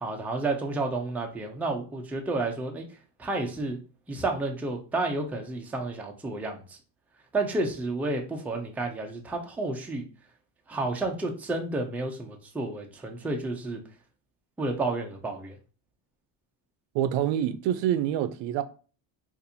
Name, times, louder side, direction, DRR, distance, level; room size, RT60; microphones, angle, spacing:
voice 1, 0.0-2.9 3.2-3.8 4.1-6.8 7.3-10.0 10.7-13.8 14.6-15.5, right 2 dB, 5° right, 0.4 m, -31 dB
voice 2, 16.9-18.6, right 11 dB, 75° right, 0.5 m, -26 dB
4.1 x 2.5 x 2.6 m
cardioid pair, 125°, 46 cm